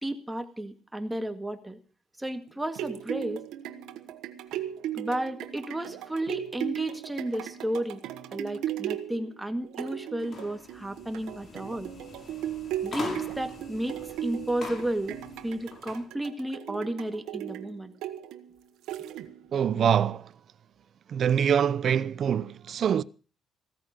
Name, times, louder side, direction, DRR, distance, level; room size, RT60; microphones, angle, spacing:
voice 1, 0.0-1.8 2.2-3.4 4.9-8.0 8.3-11.9 12.8-15.2 15.4-17.9, right 1 dB, 10° right, 1.9 m, -33 dB
sound 1, 2.5-19.6 20.1-20.2, right 12 dB, 90° right, 1.3 m, -37 dB
sound 2, 10.2-16.0, left 4 dB, 55° left, 5.6 m, -43 dB
voice 2, 19.5-20.3 21.1-23.0, right 8 dB, 60° right, 0.6 m, -24 dB
15.5 x 14.0 x 5.1 m
cardioid pair, 90°, 0 cm